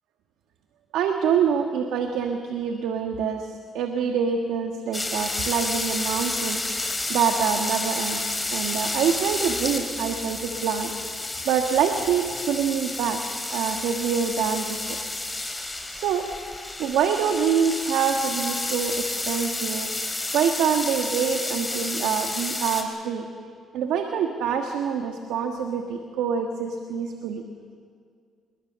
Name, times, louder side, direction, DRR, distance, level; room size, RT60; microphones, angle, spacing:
voice 1, 0.9-6.6 7.1-10.9 11.4-13.2 13.5-15.0 15.9-16.3 16.8-19.9 20.3-23.3 23.7-27.4, right 7 dB, 90° right, 4 dB, 1.5 m, -25 dB
sound 1, 4.9-22.8, left 2 dB, 15° left, 3.9 m, -30 dB
26.5 x 22.0 x 6.9 m, 2.1 s
cardioid pair, 90°, 0 cm